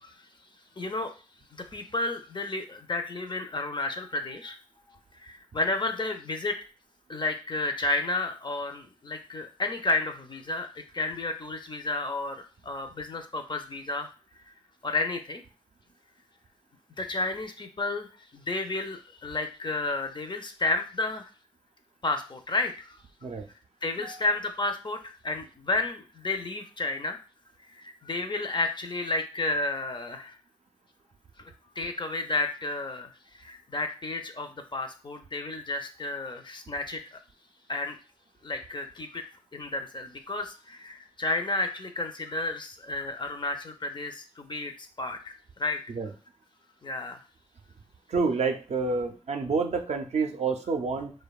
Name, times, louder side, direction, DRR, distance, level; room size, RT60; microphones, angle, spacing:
voice 1, 0.8-1.1 1.5-4.6 5.2-6.6 7.1-14.1 14.8-15.4 17.0-21.3 22.0-23.0 23.8-27.2 27.7-30.4 31.8-37.2 37.7-38.0 38.4-39.2 39.5-45.8 46.8-47.2, left 2 dB, 35° left, 6 dB, 0.5 m, -32 dB
voice 2, 48.1-51.1, right 4 dB, 55° right, 5 dB, 0.4 m, -28 dB
2.7 x 2.2 x 2.3 m, 0.35 s
cardioid pair, 40°, 13 cm